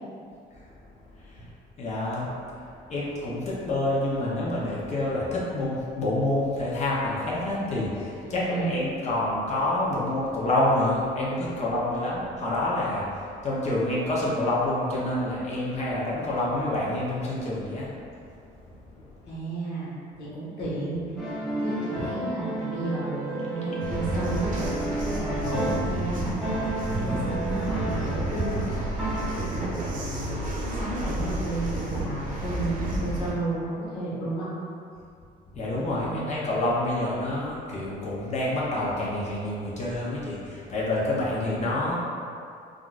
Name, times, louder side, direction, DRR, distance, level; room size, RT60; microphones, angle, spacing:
voice 1, 1.8-2.6 2.9-17.9 19.0-19.1 35.5-42.0, left 1 dB, 40° left, -6 dB, 0.6 m, -27 dB
voice 2, 8.2-8.8 19.3-26.3 27.0-28.7 29.2-34.5 36.0-36.4, right 2 dB, 75° left, -8 dB, 1.2 m, -33 dB
sound 1, 21.2-26.0 26.4-29.8, right 1 dB, ahead, 0.7 m, -32 dB
sound 2, 23.8-33.3, right 1 dB, 55° right, 0.7 m, -31 dB
3.6 x 2.3 x 2.3 m, 2.4 s
cardioid pair, 110°, 17 cm